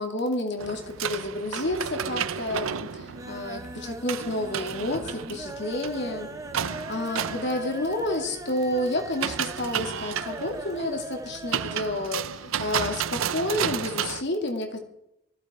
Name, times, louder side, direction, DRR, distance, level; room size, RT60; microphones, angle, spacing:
voice 1, 0.0-14.8, left 1 dB, 55° left, 3 dB, 2.5 m, -30 dB
sound 1, 0.6-14.2, right 8 dB, 75° right, 0.6 m, -33 dB
sound 2, 1.3-1.7 2.0-2.5 2.9-11.9 12.2-12.3 12.6-12.7, right 1 dB, 15° right, 0.9 m, -40 dB
20.0 x 15.0 x 4.4 m, 0.83 s
head